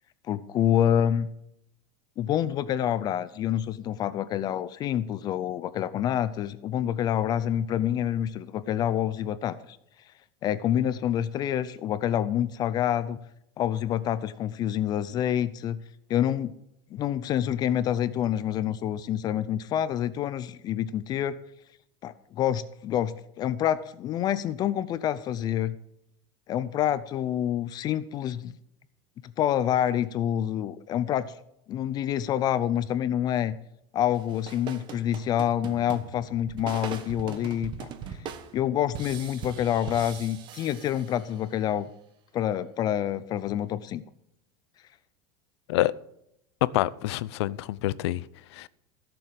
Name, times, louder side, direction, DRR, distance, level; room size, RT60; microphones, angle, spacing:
voice 1, 0.3-1.3 2.2-9.8 10.4-13.2 13.6-15.8 16.1-16.5 16.9-21.4 22.0-25.8 26.5-28.5 29.4-31.3 31.7-33.6 33.9-37.9 38.5-41.9 42.3-44.0, left 10 dB, 30° left, 0.5 m, -27 dB
sound 1, 34.1-41.6, right 7 dB, 35° right, 1.3 m, -41 dB
voice 2, 46.6-48.2 48.5-48.7, left 16 dB, 75° left, 0.7 m, -26 dB
16.0 x 6.9 x 7.6 m
supercardioid pair, 165°, 14 cm